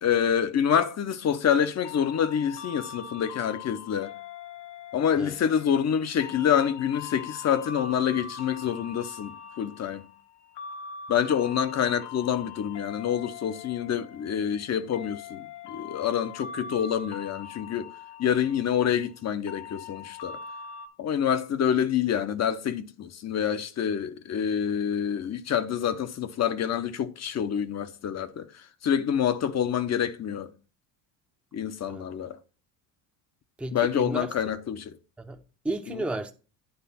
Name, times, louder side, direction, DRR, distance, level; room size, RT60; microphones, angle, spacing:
voice 1, 0.0-4.1 4.9-10.0 11.1-17.9 18.2-20.4 21.0-30.5 31.5-32.4 33.7-35.0 35.9-36.0, left 8 dB, 35° left, 0.7 m, -27 dB
sound 1, 1.8-20.9, left 6 dB, 60° left, 1.0 m, -42 dB
voice 2, 33.6-34.3 35.2-36.3, right 2 dB, 5° right, 0.7 m, -33 dB
9.7 x 3.3 x 5.6 m
supercardioid pair, 80°, 46 cm